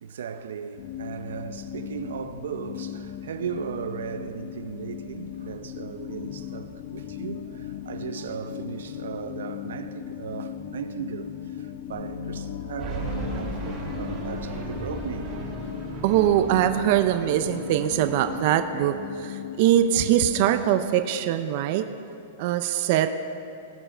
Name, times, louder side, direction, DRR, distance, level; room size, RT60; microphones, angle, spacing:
voice 1, 0.0-11.3 11.6-15.4, right 7 dB, 85° right, 0.6 m, -37 dB
sound 1, 0.8-20.6, left 10 dB, 35° left, 0.5 m, -38 dB
sound 2, 11.9-15.7, left 3 dB, 80° left, 2.0 m, -42 dB
sound 3, 12.8-18.3, right 3 dB, 20° right, 2.3 m, -36 dB
voice 2, 16.0-21.9 22.4-23.1, right 11 dB, 40° right, 0.4 m, -22 dB
18.0 x 7.1 x 4.4 m
supercardioid pair, 175°, 0 cm